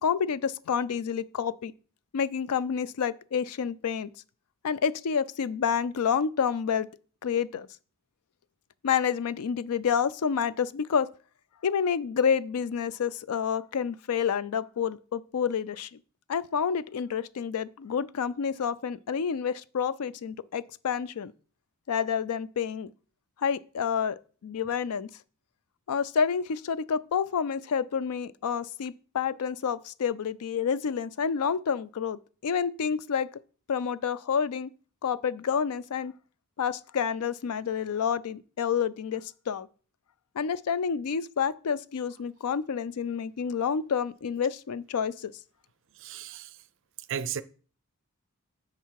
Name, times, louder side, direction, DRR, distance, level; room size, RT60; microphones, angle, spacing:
voice 1, 0.0-1.7 2.1-4.1 4.6-6.9 7.2-7.7 8.8-11.1 11.6-15.9 16.3-21.3 21.9-22.9 23.4-25.1 25.9-33.3 33.7-34.7 35.0-36.1 36.6-39.7 40.4-45.3, left 7 dB, 85° left, 0.4 m, -29 dB
voice 2, 46.0-46.6 47.1-47.4, right 8 dB, 55° right, 0.5 m, -34 dB
9.1 x 4.8 x 4.7 m
head